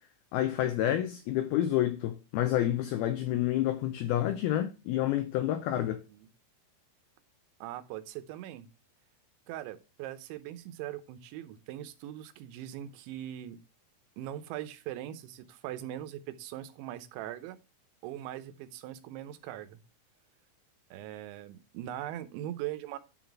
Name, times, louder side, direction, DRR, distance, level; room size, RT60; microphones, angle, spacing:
voice 1, 0.3-6.0, left 12 dB, 90° left, 2.1 m, -29 dB
voice 2, 5.9-6.3 7.6-8.7 9.5-13.6 14.2-17.6 18.0-19.8 20.9-23.0, right 12 dB, 90° right, 3.1 m, -41 dB
10.0 x 4.0 x 4.5 m
omnidirectional pair, 5.2 m